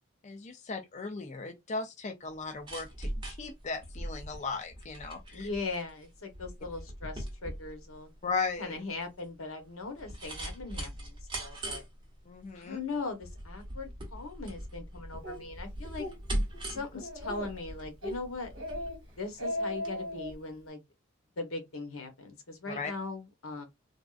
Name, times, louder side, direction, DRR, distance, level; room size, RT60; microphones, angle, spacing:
voice 1, 0.2-5.5 8.2-8.8 12.3-12.8 22.7-22.9, left 4 dB, 35° left, 0.4 m, -37 dB
sound 1, 2.3-20.0 20.3-20.4, right 1 dB, 25° right, 1.0 m, -41 dB
voice 2, 5.3-8.1 8.6-11.8 12.5-16.1 16.6-18.5 19.2-20.8 21.4-23.7, left 3 dB, 80° left, 1.0 m, -39 dB
Speech, 15.2-15.4 15.8-16.1 16.5-16.6 17.0-17.6 18.0-18.2 18.5-19.0 19.3-20.3, left 1 dB, 60° right, 1.2 m, -36 dB
3.5 x 2.3 x 2.4 m
head